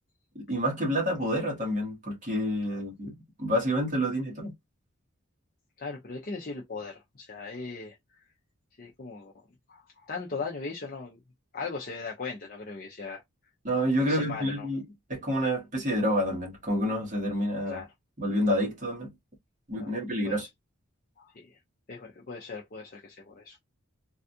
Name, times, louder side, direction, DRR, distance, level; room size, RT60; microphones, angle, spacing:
voice 1, 0.3-4.5 13.6-14.8 15.1-17.8 18.2-19.1 19.7-20.5, equal, 35° right, 1.4 m, -28 dB
voice 2, 5.8-8.0 8.8-9.3 9.7-11.2 11.5-13.2 14.0-14.7 17.7-17.9 19.8-20.0 20.2-20.5 21.2-21.6 21.9-23.6, left 4 dB, 40° left, 0.5 m, -38 dB
3.4 x 2.3 x 2.6 m
head